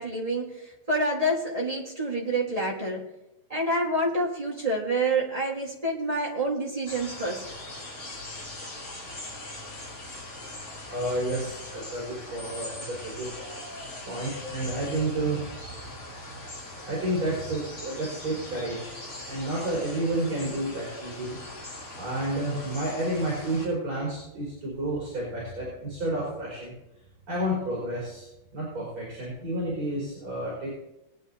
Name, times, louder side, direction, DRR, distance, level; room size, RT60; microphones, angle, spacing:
voice 1, 0.0-3.1 3.5-7.4, right 1 dB, 75° right, -4 dB, 0.3 m, -28 dB
sound 1, 6.9-23.7, left 2 dB, 40° left, 4.5 m, -41 dB
voice 2, 10.9-13.3 14.1-15.5 16.8-21.4 21.9-26.7 27.3-28.3 28.5-30.7, right 1 dB, 40° right, -6 dB, 5.0 m, -30 dB
21.5 x 9.5 x 2.8 m, 0.91 s
omnidirectional pair, 3.8 m